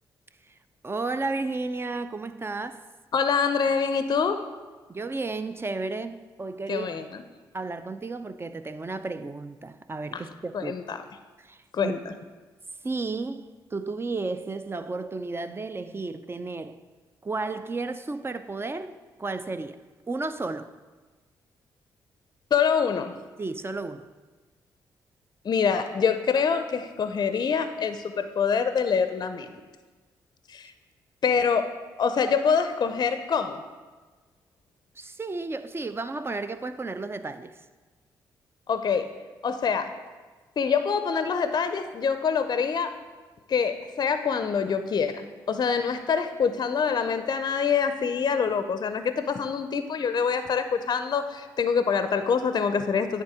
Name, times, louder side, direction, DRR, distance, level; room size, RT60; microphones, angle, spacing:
voice 1, 0.8-2.8 4.9-6.9 7.5-10.7 11.4-12.0 12.8-16.8 17.2-19.8 20.1-20.7 23.4-24.0 35.0-37.6, right 3 dB, 25° right, 0.4 m, -33 dB
voice 2, 3.1-4.4 6.7-7.2 10.1-10.2 10.5-11.0 11.7-12.0 22.5-23.1 25.4-29.5 30.5-30.7 31.2-31.7 32.0-33.6 38.7-39.1 39.4-39.9 40.6-42.9 43.5-53.2, left 6 dB, 45° left, 0.5 m, -25 dB
9.6 x 3.6 x 4.9 m
hypercardioid pair, 45°, 10 cm